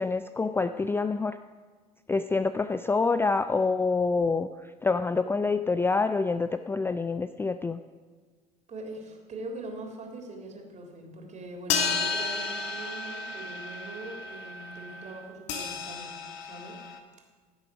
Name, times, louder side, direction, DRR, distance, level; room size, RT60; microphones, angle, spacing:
voice 1, 0.0-1.4 2.1-7.8, left 4 dB, 10° left, 10 dB, 0.4 m, -27 dB
voice 2, 8.7-16.8, right 2 dB, 35° right, 2 dB, 3.4 m, -42 dB
sound 1, 11.7-17.0, left 5 dB, 60° left, 1.5 m, -33 dB
15.5 x 7.6 x 6.2 m, 1.4 s
hypercardioid pair, 65°, 20 cm